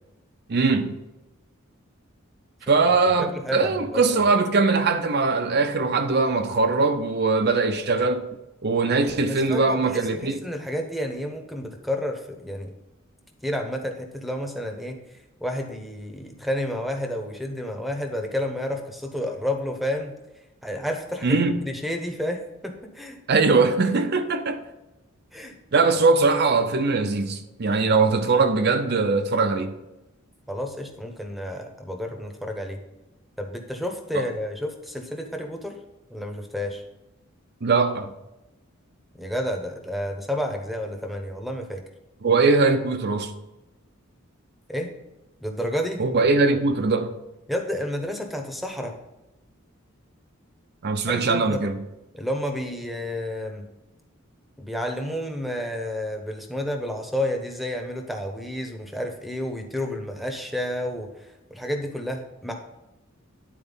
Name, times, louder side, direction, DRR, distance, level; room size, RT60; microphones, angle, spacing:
voice 1, 0.5-0.9 2.7-8.3 8.6-10.4 21.2-21.6 23.3-24.6 25.7-29.8 34.2-34.3 37.6-38.1 42.2-43.3 46.0-47.1 50.8-51.8, right 4 dB, 50° right, 0.6 m, -21 dB
voice 2, 3.2-4.0 9.3-12.7 13.4-15.0 15.4-20.1 20.6-23.2 25.3-25.5 30.5-32.8 33.4-35.8 36.1-36.8 39.2-41.8 44.7-44.9 45.4-46.1 47.5-49.0 51.1-51.6 52.1-53.7 54.6-62.5, left 1 dB, ahead, 1.0 m, -30 dB
10.0 x 4.4 x 5.5 m
head